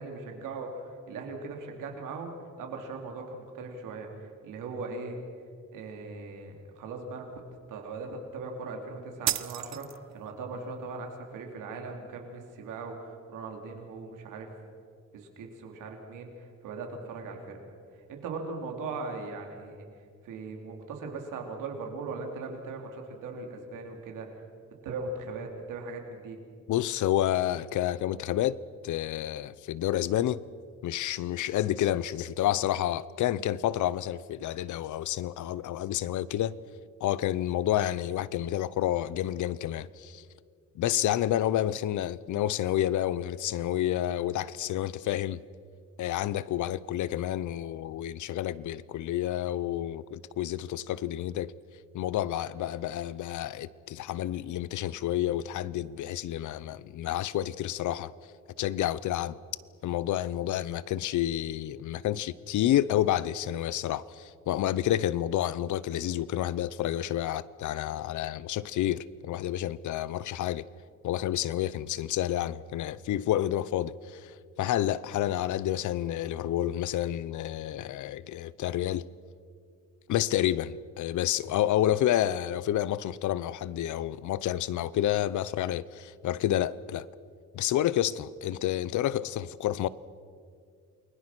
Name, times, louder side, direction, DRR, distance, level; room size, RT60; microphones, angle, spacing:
voice 1, 0.0-5.2 5.7-7.4 7.7-14.5 15.1-17.7 17.9-19.8 20.2-24.4 24.8-26.4, right 3 dB, 90° right, 3.9 m, -39 dB
sound 1, 9.3-10.3, right 13 dB, 60° right, 0.8 m, -32 dB
voice 2, 26.7-28.6 28.8-30.4 30.8-36.6 37.0-40.2 40.7-45.4 46.0-51.5 51.9-58.1 58.6-59.4 59.8-70.7 71.0-79.1 80.1-87.1 87.5-89.9, left 12 dB, 70° left, 0.8 m, -29 dB
29.0 x 21.5 x 6.2 m
cardioid pair, 125°, 31 cm